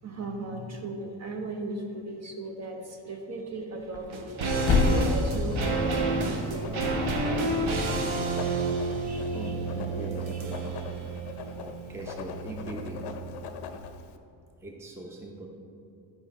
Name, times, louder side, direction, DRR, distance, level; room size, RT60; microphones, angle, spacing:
voice 1, 0.0-6.8 9.0-9.5, right 2 dB, 35° right, 3 dB, 0.9 m, -37 dB
Thump thud, 3.8-7.9, left 3 dB, 35° left, 0.9 m, -30 dB
sound 1, 4.1-13.5 13.7-13.8, right 2 dB, 85° right, 1.1 m, -30 dB
Writing, 4.7-14.2, left 7 dB, 60° left, 0.6 m, -42 dB
voice 2, 9.3-13.0 14.6-15.5, right 1 dB, 5° right, 0 dB, 0.6 m, -42 dB
11.0 x 5.1 x 3.7 m, 2.5 s
cardioid pair, 150°, 45 cm